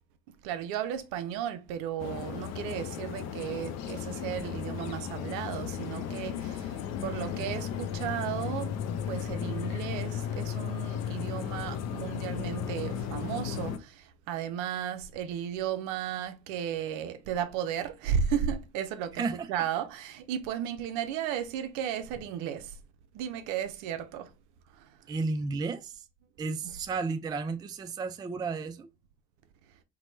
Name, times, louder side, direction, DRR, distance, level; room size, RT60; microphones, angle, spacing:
voice 1, 0.3-8.7 9.1-19.2 19.5-22.8 23.1-24.3 24.8-24.9, right 9 dB, 65° right, 0.5 m, -34 dB
sound 1, 2.0-13.8, left 8 dB, 55° left, 0.5 m, -35 dB
voice 2, 25.1-26.0 26.4-28.9, right 4 dB, 15° right, 0.3 m, -33 dB
2.9 x 2.2 x 3.0 m
hypercardioid pair, 60°, 32 cm